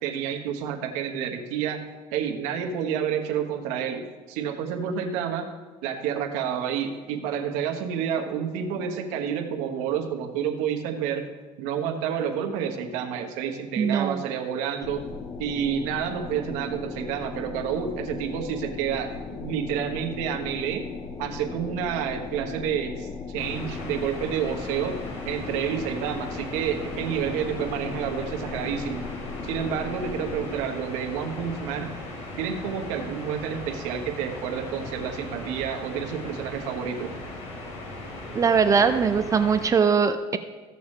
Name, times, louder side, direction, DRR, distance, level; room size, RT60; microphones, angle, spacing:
voice 1, 0.0-1.8 2.1-5.5 5.8-11.3 11.6-15.0 15.4-20.8 21.2-25.0 25.2-29.1 29.4-31.9 32.4-37.1, right 8 dB, 90° right, 4 dB, 1.2 m, -29 dB
voice 2, 13.8-14.2 38.3-40.4, right 6 dB, 30° right, 9 dB, 0.4 m, -21 dB
sound 1, 14.8-30.6, left 5 dB, 30° left, 0.6 m, -37 dB
sound 2, 23.4-39.7, left 1 dB, 65° left, 2.8 m, -38 dB
15.0 x 6.9 x 3.2 m, 1.4 s
cardioid pair, 125°, 12 cm